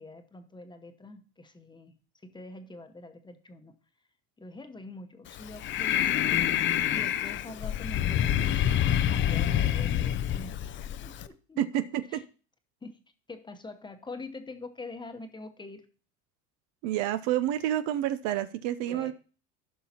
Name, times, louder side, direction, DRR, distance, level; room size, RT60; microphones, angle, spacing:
voice 1, 0.0-1.9 2.2-3.7 4.4-6.4 6.9-11.6 12.1-12.2 12.8-13.0 13.3-15.9 18.9-19.1, left 2 dB, 15° left, 1.0 m, -45 dB
Breathing, 5.3-11.3, left 11 dB, 35° left, 0.5 m, -27 dB
voice 2, 11.6-12.2 16.8-19.1, right 12 dB, 60° right, 0.6 m, -29 dB
15.0 x 5.6 x 2.9 m
supercardioid pair, 100°, 33 cm